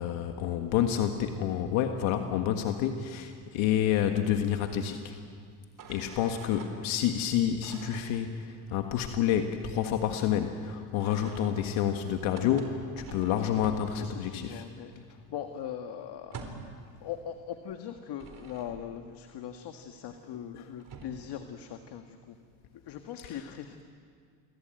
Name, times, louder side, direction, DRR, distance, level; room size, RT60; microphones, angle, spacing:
voice 1, 0.0-5.1 5.9-14.6, left 10 dB, 70° left, 5 dB, 1.7 m, -29 dB
sound 1, 5.8-6.7 7.6-8.1 11.0-14.4 14.7-14.9 15.1-16.8 17.8-19.0 20.5-20.6 20.8-21.4, right 5 dB, 40° right, 4.0 m, -47 dB
voice 2, 6.6-6.9 13.9-16.4 16.7-22.3 22.7-23.8, left 9 dB, 55° left, 6 dB, 1.7 m, -41 dB
28.0 x 22.0 x 9.1 m, 2.2 s
cardioid pair, 120°, 49 cm